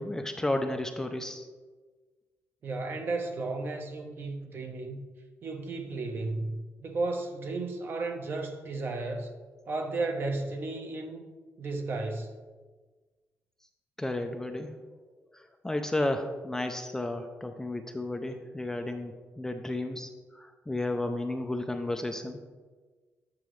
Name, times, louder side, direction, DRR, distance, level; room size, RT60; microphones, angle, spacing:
voice 1, 0.0-1.5 14.0-14.7 15.3-22.4, left 1 dB, 10° left, 0.4 m, -33 dB
voice 2, 2.6-5.0 5.4-9.3 9.7-11.2 11.6-12.3, right 3 dB, 45° right, 0.8 m, -33 dB
8.5 x 6.2 x 3.1 m
cardioid pair, 145°, 5 cm